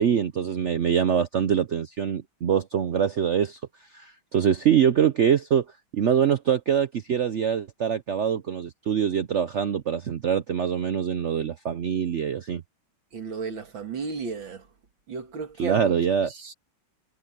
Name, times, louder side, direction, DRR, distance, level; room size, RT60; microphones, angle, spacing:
voice 1, 0.0-5.6 5.9-12.6 15.6-16.3, right 8 dB, 85° right, 0.6 m, -24 dB
voice 2, 13.1-14.7 15.1-15.9 16.3-16.5, right 5 dB, 70° right, 2.7 m, -34 dB
omnidirectional pair, 2.2 m